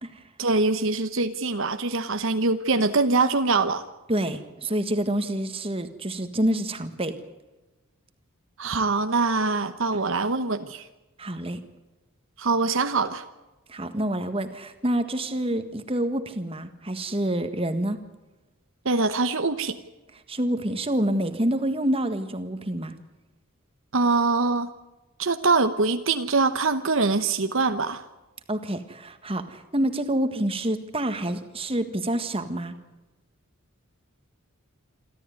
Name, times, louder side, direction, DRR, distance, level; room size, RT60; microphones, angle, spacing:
voice 1, 0.4-3.9 8.6-10.9 12.4-13.2 18.8-19.8 23.9-24.7 25.2-28.0, right 3 dB, 60° right, 9 dB, 1.0 m, -23 dB
voice 2, 4.1-7.2 11.2-11.6 13.7-18.0 20.3-22.9 28.5-32.7, right 1 dB, 25° right, 9 dB, 1.7 m, -27 dB
27.5 x 13.0 x 9.5 m, 1.1 s
head